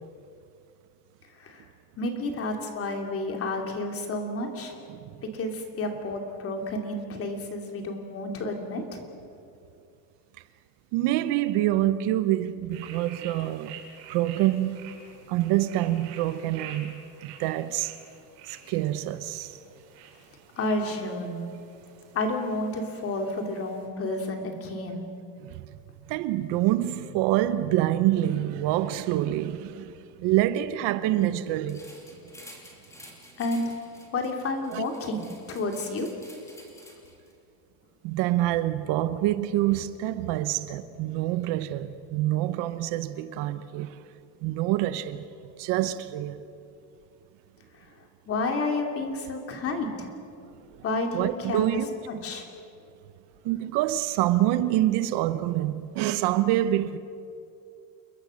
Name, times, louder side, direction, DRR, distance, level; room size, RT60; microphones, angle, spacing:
voice 1, 1.4-1.7 2.0-4.8 5.3-9.0 20.6-21.5 22.1-25.1 33.4-33.7 34.1-36.1 47.8-47.9 48.3-50.1 50.8-51.7 52.1-52.5, left 2 dB, 30° left, 2.8 m, -30 dB
voice 2, 10.9-13.8 14.1-14.9 15.3-17.9 18.5-19.6 25.4-25.7 26.1-29.9 30.2-31.8 34.7-34.8 38.0-44.0 44.4-45.2 45.6-46.4 50.7-50.8 51.1-51.9 53.4-57.0, right 14 dB, 60° right, 1.1 m, -26 dB
sound 1, 12.7-23.9, right 7 dB, 85° right, 5.8 m, -49 dB
sound 2, 31.7-37.3, left 1 dB, 5° left, 2.8 m, -50 dB
29.5 x 21.5 x 6.5 m
cardioid pair, 175°, 48 cm